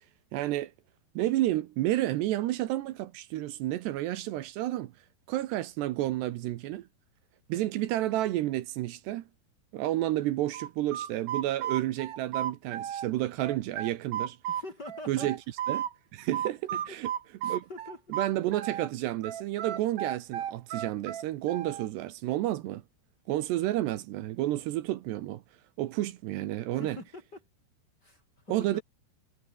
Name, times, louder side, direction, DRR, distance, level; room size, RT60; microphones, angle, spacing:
voice 1, 0.3-0.7 1.2-4.9 5.3-6.9 7.5-9.2 9.7-14.4 15.1-15.4 15.7-15.8 16.1-17.1 17.4-17.7 18.1-22.8 23.3-25.4 25.8-27.0 28.5-28.8, right 15 dB, 75° right, 3.0 m, -30 dB
sound 1, 10.5-13.1 13.4-15.9 16.3-18.9 19.2-21.9, right 10 dB, 55° right, 3.0 m, -34 dB
voice 2, 14.5-15.3 16.7-17.0 17.4-18.0 26.7-27.4 28.0-28.8, left 2 dB, 25° left, 2.9 m, -44 dB
omnidirectional pair, 5.2 m